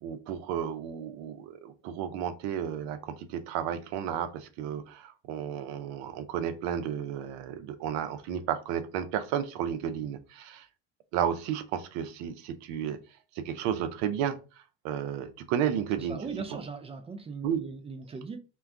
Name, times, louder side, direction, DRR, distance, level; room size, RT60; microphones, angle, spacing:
voice 1, 0.0-10.7 11.1-13.0 13.3-14.4 14.8-16.6 17.4-17.6, right 9 dB, 65° right, 0.6 m, -32 dB
voice 2, 16.1-18.4, right 4 dB, 20° right, 0.4 m, -39 dB
2.2 x 2.2 x 3.5 m
supercardioid pair, 90°, 30 cm